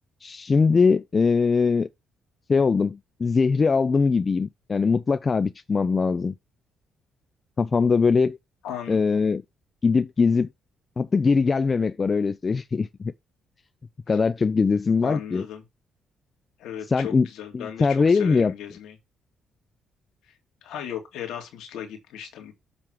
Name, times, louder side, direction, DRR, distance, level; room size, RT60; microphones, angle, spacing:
voice 1, 0.2-1.9 2.5-6.3 7.6-8.4 8.9-9.4 9.8-10.5 11.0-13.1 14.1-15.4 16.9-17.3 17.5-18.5, left 4 dB, 35° left, 0.3 m, -21 dB
voice 2, 8.6-9.0 14.1-14.2 15.0-15.6 16.6-19.0 20.2-22.5, left 9 dB, 85° left, 2.3 m, -36 dB
7.4 x 3.5 x 6.2 m
cardioid pair, 90°, 0 cm